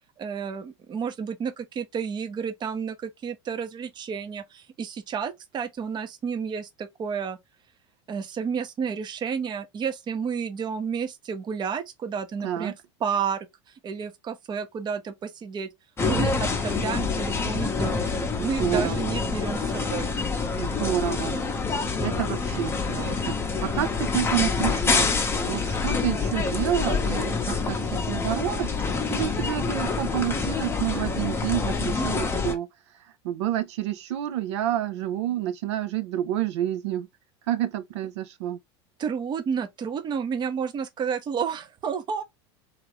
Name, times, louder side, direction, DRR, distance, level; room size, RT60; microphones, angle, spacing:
voice 1, 0.2-7.4 8.1-13.5 13.8-15.7 16.0-18.1 18.4-20.1 39.0-42.2, right 6 dB, 30° right, 0.6 m, -31 dB
voice 2, 12.4-12.7 18.4-19.2 20.6-21.4 22.0-23.3 23.6-25.1 25.5-28.7 29.1-32.7 33.2-37.1 37.5-38.6, right 12 dB, 75° right, 0.5 m, -29 dB
sound 1, 16.0-32.6, left 4 dB, 15° left, 0.7 m, -27 dB
2.8 x 2.4 x 3.0 m
hypercardioid pair, 100°, 15 cm